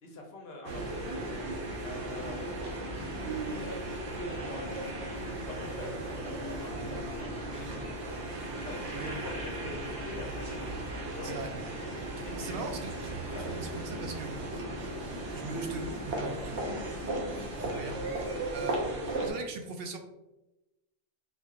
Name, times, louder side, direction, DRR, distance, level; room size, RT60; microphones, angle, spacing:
voice 1, 0.0-1.2 1.8-3.1 3.5-3.9 4.1-4.9 5.4-7.7 8.6-10.5 11.1-11.3 12.2-12.6 13.3-13.5 18.6-18.8, left 2 dB, 65° left, 1 dB, 0.9 m, -45 dB
sound 1, 0.6-19.3, right 1 dB, 85° right, 1.1 m, -36 dB
voice 2, 12.2-13.1 13.4-14.7 15.3-16.6 17.6-18.8 19.2-20.0, right 3 dB, 65° right, 4 dB, 0.8 m, -40 dB
4.2 x 2.8 x 2.4 m, 0.98 s
omnidirectional pair, 1.1 m